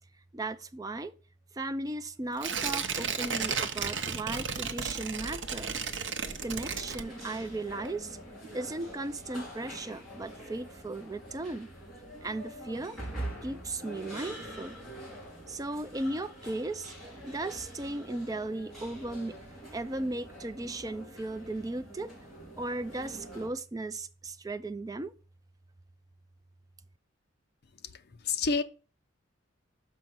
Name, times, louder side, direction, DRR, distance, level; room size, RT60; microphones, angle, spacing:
voice 1, 0.1-1.2 1.5-5.8 6.4-8.2 8.5-11.7 12.2-13.0 13.4-14.8 15.5-16.9 17.2-19.4 19.7-25.2, right 2 dB, 15° right, 0.3 m, -36 dB
Tearing, 2.4-7.5 7.8-7.9, right 6 dB, 60° right, 0.7 m, -34 dB
sound 1, 6.3-23.5, right 1 dB, ahead, 4.0 m, -45 dB
voice 2, 27.8-28.6, left 4 dB, 50° left, 0.6 m, -30 dB
6.5 x 5.1 x 5.8 m
head